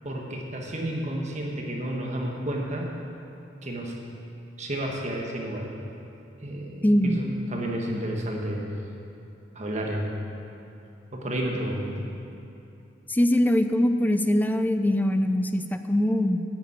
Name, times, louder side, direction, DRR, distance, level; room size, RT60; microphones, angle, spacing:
voice 1, 0.0-2.9 3.6-3.9 4.6-5.7 6.4-8.6 9.5-10.1 11.1-12.1, right 1 dB, 40° right, 0 dB, 1.4 m, -31 dB
voice 2, 6.8-7.2 13.1-16.4, left 1 dB, 10° left, 8 dB, 0.5 m, -22 dB
10.0 x 7.0 x 8.6 m, 2.8 s
head